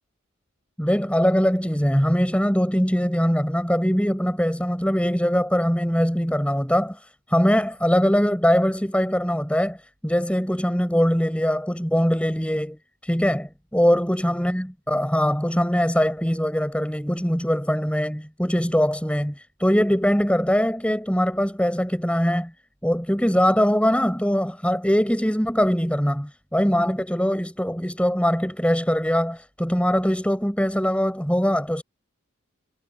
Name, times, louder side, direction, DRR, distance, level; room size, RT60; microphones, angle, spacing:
voice 1, 0.8-9.8 10.0-22.5 22.8-31.8, equal, 5° left, 6.6 m, -22 dB
head